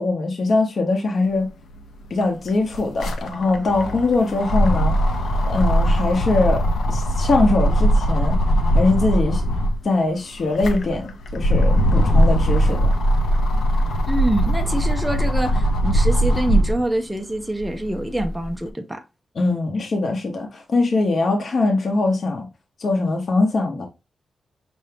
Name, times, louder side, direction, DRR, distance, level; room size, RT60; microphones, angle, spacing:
voice 1, 0.0-1.5 2.1-4.9 5.4-6.6 6.9-8.4 8.7-9.4 9.8-12.9 19.4-22.5 22.8-23.9, left 3 dB, 45° left, 0.8 m, -21 dB
sound 1, 1.7-1.8 2.0-9.8 10.3-16.9 17.4-18.5, equal, 90° left, 0.7 m, -20 dB
voice 2, 14.1-19.0, right 1 dB, 5° right, 0.4 m, -25 dB
5.6 x 2.6 x 3.3 m
wide cardioid pair, 175°, 0 cm